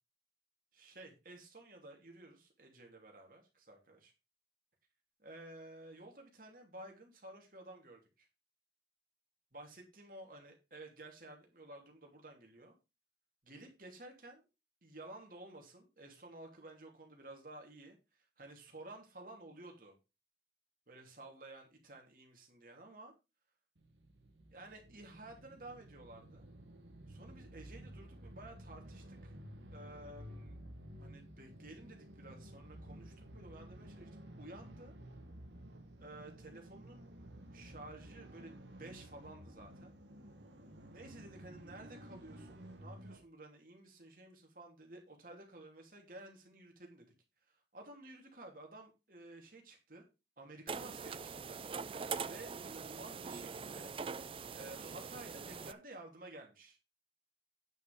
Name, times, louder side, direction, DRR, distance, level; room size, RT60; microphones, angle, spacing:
voice 1, 0.7-4.1 5.2-8.3 9.5-12.7 13.4-14.5 14.8-20.0 20.9-23.1 24.5-26.5 27.1-29.3 29.7-30.6 31.0-34.1 34.4-34.9 36.0-37.0 37.5-39.9 40.9-47.1 47.5-50.0 50.4-53.9 54.5-56.8, right 2 dB, 50° right, 2 dB, 2.9 m, -53 dB
sound 1, 23.8-43.2, right 1 dB, 90° right, 1.8 m, -53 dB
sound 2, 50.7-55.7, right 5 dB, 30° right, 0.4 m, -43 dB
9.5 x 5.7 x 5.2 m, 0.27 s
head